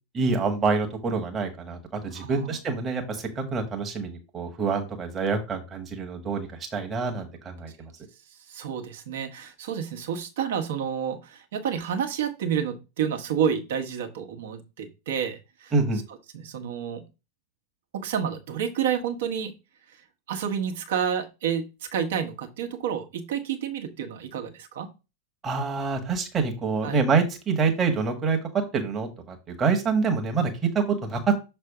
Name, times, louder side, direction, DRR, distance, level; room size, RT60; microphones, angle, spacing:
voice 1, 0.1-7.9 15.7-16.0 25.4-28.4 28.7-31.4, right 4 dB, 25° right, 3 dB, 1.4 m, -26 dB
voice 2, 2.1-2.6 8.3-15.7 16.3-17.0 17.9-19.5 19.9-20.0 20.3-24.9 26.8-27.0, right 8 dB, 55° right, 5 dB, 1.3 m, -30 dB
6.6 x 3.3 x 4.8 m, 0.28 s
figure-of-eight pair, 90°, 0 cm